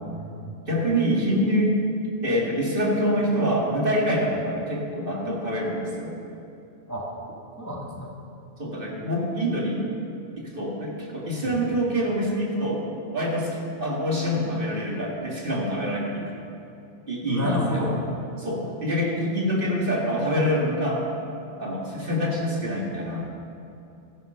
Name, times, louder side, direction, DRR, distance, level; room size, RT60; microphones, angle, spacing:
voice 1, 0.0-0.5 6.9-7.1 7.6-8.1 11.4-11.5 17.2-17.9, left 1 dB, 15° left, -3 dB, 1.6 m, -30 dB
voice 2, 0.7-1.8 2.2-6.1 8.6-9.8 10.4-12.8 13.1-16.3 17.1-18.0 18.4-21.0 21.6-23.3, equal, 45° right, -3 dB, 2.2 m, -25 dB
13.5 x 11.0 x 5.7 m, 2.7 s
omnidirectional pair, 1.3 m